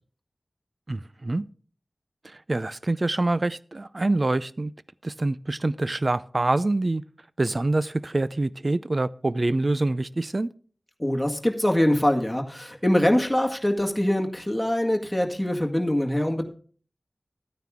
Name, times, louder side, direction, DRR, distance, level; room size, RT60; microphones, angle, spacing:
voice 1, 0.9-1.4 2.5-4.7 5.0-7.0 7.4-10.5, right 2 dB, 45° right, 0.5 m, -25 dB
voice 2, 11.0-16.5, left 1 dB, 5° left, 1.9 m, -23 dB
13.0 x 9.4 x 3.7 m
wide cardioid pair, 70°, 0 cm